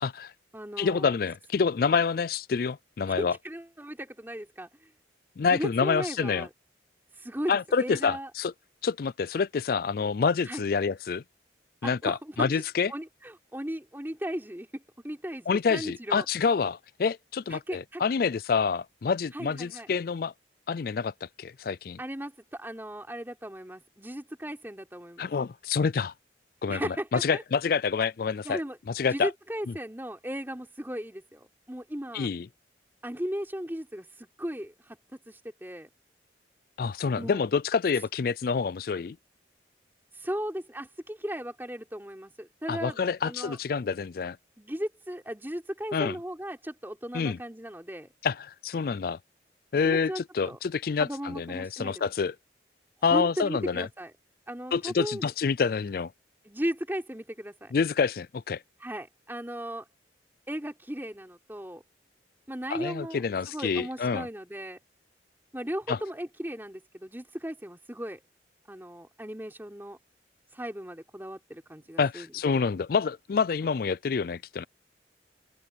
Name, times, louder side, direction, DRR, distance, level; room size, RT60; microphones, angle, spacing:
voice 1, 0.0-0.3 0.8-3.4 5.4-6.5 7.5-8.5 8.8-11.2 11.8-12.9 15.5-20.3 20.7-22.0 25.2-26.1 26.6-28.6 28.9-29.3 32.1-32.5 36.8-39.2 42.7-44.4 45.9-46.2 47.1-47.4 48.2-49.2 49.7-52.3 53.0-53.9 54.7-56.1 57.7-58.6 62.7-64.3 65.9-66.0 72.0-74.7, left 5 dB, 50° left, 0.4 m, -27 dB
voice 2, 0.5-1.1 3.2-4.9 5.5-6.5 7.2-8.3 10.5-10.6 11.8-12.6 12.9-16.3 17.5-18.0 19.3-19.9 22.0-25.3 26.7-27.4 28.4-28.8 29.1-32.3 33.0-35.0 35.3-35.9 37.2-37.4 40.2-43.0 43.2-43.6 44.6-48.1 49.8-50.6 51.0-52.0 53.1-54.1 54.5-55.3 56.5-57.7 58.8-59.9 60.5-61.8 62.5-63.2 63.5-64.8 65.5-68.2 68.7-70.0 70.5-72.6, equal, 10° right, 3.6 m, -36 dB
open air
head